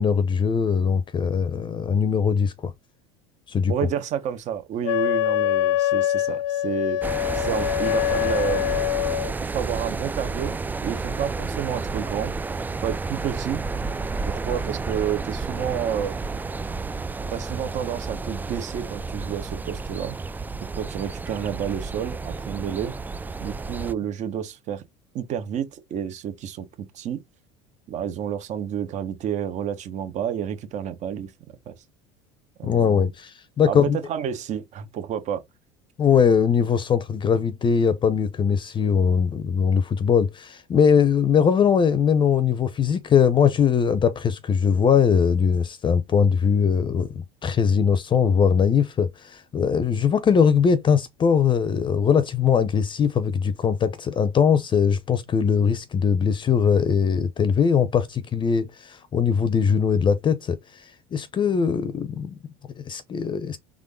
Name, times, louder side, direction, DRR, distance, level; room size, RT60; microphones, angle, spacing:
voice 1, 0.0-2.7 3.5-3.7 32.6-34.0 36.0-62.4 62.8-63.6, left 7 dB, 30° left, 0.7 m, -21 dB
voice 2, 3.7-8.8 9.4-12.4 12.8-13.6 14.2-16.1 17.3-20.1 20.7-22.9 23.4-24.8 25.1-26.7 26.9-27.2 27.9-31.3 31.7-31.8 32.6-33.1 33.7-35.4, right 9 dB, 50° right, 1.2 m, -30 dB
Wind instrument woodwind instrument, 4.8-9.3, left 14 dB, 75° left, 0.6 m, -24 dB
sound 1, 7.0-23.9, right 4 dB, 10° right, 0.3 m, -31 dB
3.8 x 3.6 x 3.7 m
hypercardioid pair, 90°, 15 cm